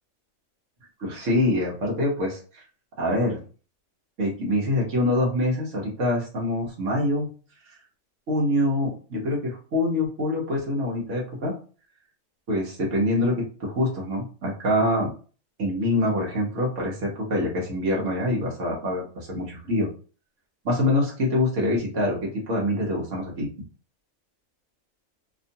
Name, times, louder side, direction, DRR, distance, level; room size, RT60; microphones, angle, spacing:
voice 1, 1.0-2.6 3.0-3.4 4.2-7.3 8.3-11.5 12.5-15.1 15.6-19.9 20.6-23.5, left 1 dB, 65° right, -3 dB, 1.3 m, -25 dB
3.0 x 2.4 x 2.7 m, 0.38 s
omnidirectional pair, 1.4 m